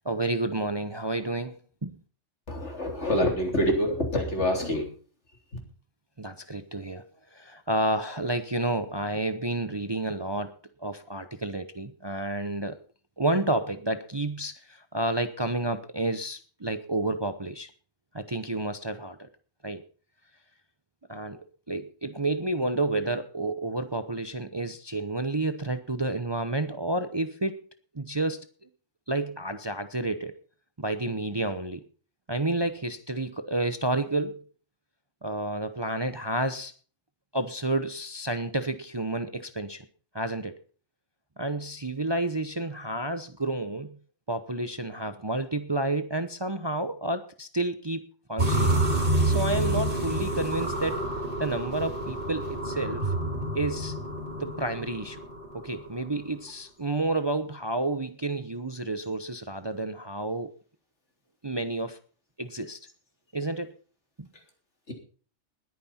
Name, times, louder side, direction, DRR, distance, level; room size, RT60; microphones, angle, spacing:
voice 1, 0.0-2.0 6.2-10.5 10.8-12.8 13.2-17.7 18.1-19.3 19.6-19.8 21.1-27.6 27.9-28.5 29.1-30.3 30.8-31.8 32.3-34.4 35.2-36.7 37.3-39.9 40.1-40.6 41.4-44.0 44.3-48.7 49.2-51.0 51.4-53.1 53.5-53.9 54.4-55.2 55.5-60.5 61.4-62.0 62.4-62.8 63.3-63.7 64.2-64.3, right 2 dB, 25° right, 10 dB, 0.8 m, -30 dB
voice 2, 2.5-4.9 64.9-65.0, left 1 dB, 65° left, 3 dB, 3.9 m, -26 dB
sound 1, 48.4-55.5, right 1 dB, 45° right, 3.5 m, -28 dB
20.0 x 9.5 x 4.3 m, 0.40 s
omnidirectional pair, 1.3 m